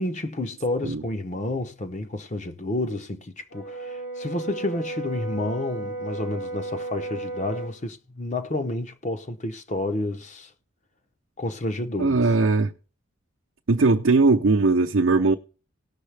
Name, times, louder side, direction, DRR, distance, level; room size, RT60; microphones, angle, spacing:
voice 1, 0.0-10.5 11.4-12.2, left 2 dB, 35° left, 0.7 m, -30 dB
Brass instrument, 3.5-7.8, right 2 dB, 80° left, 2.5 m, -34 dB
voice 2, 12.0-12.7 13.7-15.3, right 3 dB, 70° right, 0.6 m, -19 dB
18.0 x 6.5 x 3.3 m
head